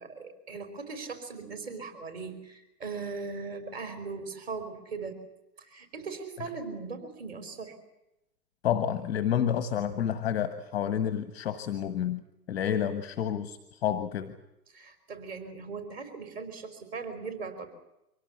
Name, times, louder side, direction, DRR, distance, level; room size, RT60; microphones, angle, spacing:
voice 1, 0.0-5.2 5.6-7.7 14.7-17.7, right 4 dB, 40° right, 9 dB, 5.0 m, -39 dB
voice 2, 8.6-12.2 12.5-14.3, left 9 dB, 10° left, 11 dB, 0.8 m, -29 dB
24.5 x 17.5 x 9.4 m, 0.89 s
hypercardioid pair, 150°, 49 cm